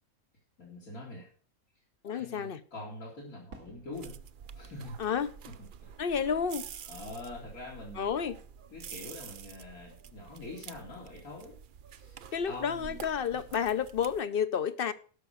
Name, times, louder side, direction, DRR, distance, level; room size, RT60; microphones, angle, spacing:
voice 1, 0.6-1.3 2.0-4.2 4.5-4.9 5.8-5.9 6.9-8.3 8.7-11.5 11.9-13.0 13.3-13.4, left 2 dB, 85° left, 3.4 m, -44 dB
voice 2, 2.0-2.6 5.0-5.3 6.0-6.6 8.0-8.4 12.3-14.9, left 7 dB, 50° left, 0.7 m, -30 dB
Fireworks, 3.5-7.9 8.1-8.9, right 3 dB, 85° right, 2.1 m, -58 dB
sound 1, 3.9-14.2, right 8 dB, 60° right, 0.5 m, -48 dB
12.5 x 5.8 x 6.6 m
omnidirectional pair, 1.5 m